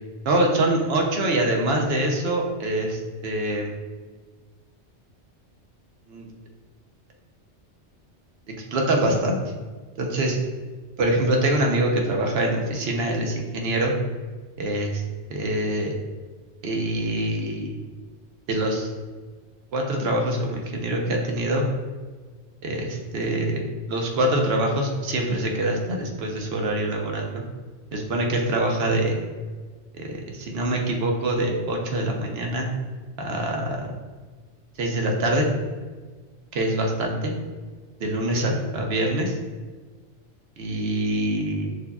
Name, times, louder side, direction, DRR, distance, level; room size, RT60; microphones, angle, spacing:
voice 1, 0.3-3.8 6.1-6.3 8.7-9.4 10.0-10.4 11.0-13.9 14.6-15.0 15.3-15.9 16.6-17.8 18.5-18.9 19.7-21.7 22.6-27.5 27.9-29.2 30.0-32.7 33.2-33.9 34.8-35.5 36.5-37.3 38.0-39.4 40.6-41.7, right 1 dB, 65° right, 1 dB, 0.9 m, -24 dB
6.3 x 2.7 x 2.3 m, 1.4 s
omnidirectional pair, 1.2 m